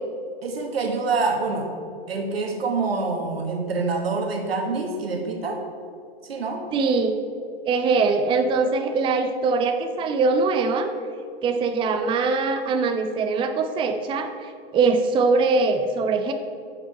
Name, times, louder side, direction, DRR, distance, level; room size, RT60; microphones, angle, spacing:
voice 1, 0.4-1.7 2.1-5.6 6.2-6.7, right 3 dB, 80° right, 3 dB, 1.3 m, -26 dB
voice 2, 6.7-7.2 7.7-10.9 11.4-16.3, right 4 dB, 15° right, 7 dB, 0.5 m, -22 dB
10.5 x 4.9 x 4.6 m, 2.4 s
hypercardioid pair, 95°, 30 cm